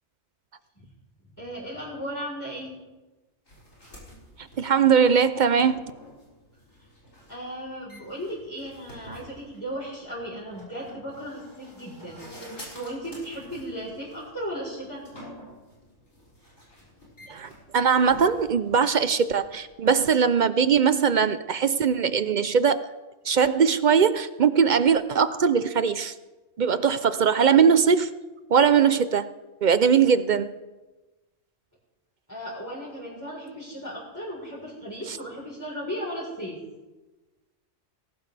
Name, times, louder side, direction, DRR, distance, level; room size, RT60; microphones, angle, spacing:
voice 1, 1.2-2.7 6.8-6.9 7.3-15.0 16.8-16.9 17.2-17.3 32.3-36.6, equal, 15° left, -7 dB, 4.0 m, -36 dB
sound 1, 3.5-19.9, equal, 90° left, 6.2 m, -49 dB
voice 2, 4.6-5.8 17.3-22.8 23.2-26.1 26.6-28.1 28.5-29.3 29.6-30.5, right 6 dB, 55° right, 13 dB, 0.5 m, -20 dB
19.0 x 16.5 x 3.4 m, 1.2 s
omnidirectional pair, 1.3 m